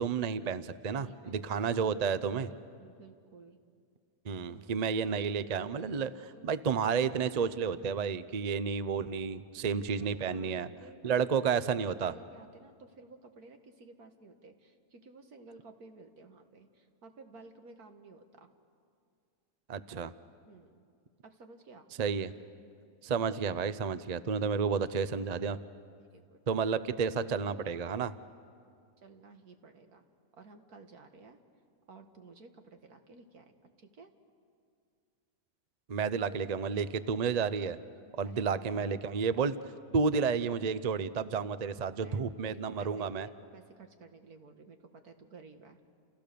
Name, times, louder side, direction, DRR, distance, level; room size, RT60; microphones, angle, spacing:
voice 1, 0.0-2.5 4.2-10.7 11.0-12.1 19.7-20.1 22.0-22.3 23.0-25.6 26.5-28.1 35.9-37.8 38.2-39.6 39.9-43.3, right 6 dB, 45° right, 13 dB, 0.5 m, -31 dB
voice 2, 0.9-1.4 2.5-3.6 4.3-4.7 6.0-6.6 10.0-11.7 12.0-18.5 20.5-20.9 21.2-21.9 24.6-24.7 26.1-26.4 29.0-30.0 30.4-31.4 31.9-33.5 33.8-34.1 38.2-39.0 41.9-44.8 45.0-45.8, right 3 dB, 70° right, 6 dB, 2.2 m, -54 dB
29.5 x 29.0 x 6.9 m, 2.3 s
omnidirectional pair, 1.6 m